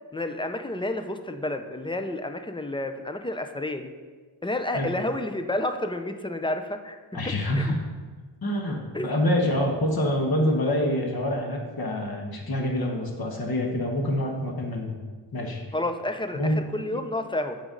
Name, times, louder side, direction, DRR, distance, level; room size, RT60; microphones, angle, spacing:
voice 1, 0.1-3.9 4.4-7.0 7.5-7.6 8.9-9.1 15.7-17.6, left 1 dB, 10° left, 7 dB, 0.3 m, -30 dB
voice 2, 7.1-7.8 8.4-8.8 9.0-15.0 15.3-15.6 16.3-16.7, left 1 dB, 50° left, 1 dB, 1.2 m, -26 dB
7.9 x 5.3 x 3.8 m, 1.4 s
wide cardioid pair, 110°, 47 cm